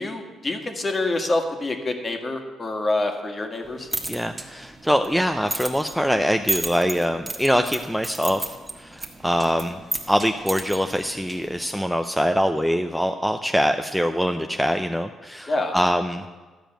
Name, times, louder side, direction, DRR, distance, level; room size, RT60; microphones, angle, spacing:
voice 1, 0.0-3.9 15.5-15.7, left 2 dB, 30° left, 4 dB, 1.7 m, -26 dB
sound 1, 3.6-11.7, right 3 dB, 15° right, 1.5 m, -34 dB
voice 2, 4.1-9.8 10.1-16.2, equal, ahead, 6 dB, 0.5 m, -23 dB
12.5 x 5.1 x 8.9 m, 1.3 s
cardioid pair, 90°, 0 cm